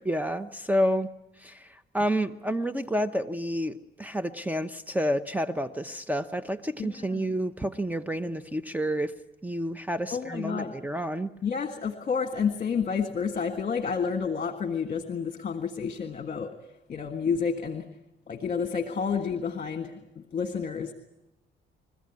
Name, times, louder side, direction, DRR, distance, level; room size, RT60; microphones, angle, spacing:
voice 1, 0.0-1.1 1.4-9.1 9.4-11.3, equal, 10° right, 11 dB, 0.9 m, -29 dB
voice 2, 6.8-7.2 10.1-10.7 11.4-16.5 16.9-17.9 18.3-20.0 20.3-20.9, left 6 dB, 40° left, 6 dB, 1.7 m, -30 dB
29.5 x 14.5 x 9.7 m, 0.91 s
cardioid pair, 90°, 20 cm